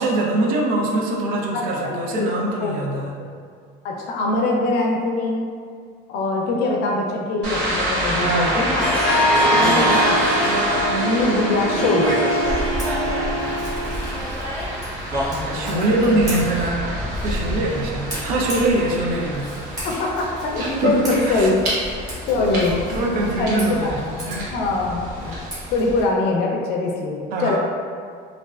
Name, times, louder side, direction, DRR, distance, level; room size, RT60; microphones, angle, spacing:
voice 1, 0.0-3.2 8.1-8.8 9.6-10.0 15.4-16.9 17.2-19.5 20.8-21.6 22.6-24.5 27.3-27.6, right 2 dB, 50° right, -1 dB, 0.4 m, -23 dB
voice 2, 1.5-2.3 2.6-3.0 3.8-5.4 6.1-9.0 9.5-10.2 10.5-12.2 15.3-16.2 19.8-20.1 20.4-21.6 22.3-24.1 24.5-25.4 25.7-27.6, left 2 dB, 65° left, -1 dB, 0.5 m, -23 dB
sound 1, 7.4-26.0, equal, 75° right, 1.0 m, -27 dB
Harp, 8.8-14.3, equal, 5° left, 0.5 m, -23 dB
Scissors, 12.4-26.1, equal, 20° right, 0.9 m, -34 dB
3.2 x 2.4 x 2.3 m, 2.1 s
cardioid pair, 165°, 18 cm